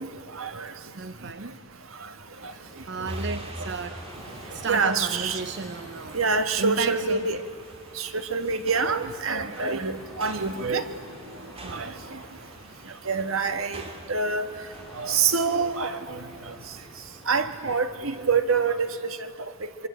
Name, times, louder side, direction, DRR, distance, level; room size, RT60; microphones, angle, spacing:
voice 1, 0.4-0.7 4.7-5.4 6.1-7.4 8.0-10.8 11.7-11.9 13.1-13.8 14.1-14.4 15.0-16.2 17.3-19.3, right 5 dB, 75° right, 8 dB, 1.6 m, -26 dB
voice 2, 0.9-1.6 2.5-4.0 4.5-6.2 6.6-7.3 11.6-11.9, right 4 dB, 55° right, 9 dB, 0.8 m, -33 dB
sound 1, 2.3-18.4, equal, ahead, 6.0 m, -48 dB
sound 2, 3.1-15.6, right 1 dB, 30° right, 2.2 m, -44 dB
25.5 x 24.5 x 8.9 m, 2.4 s
head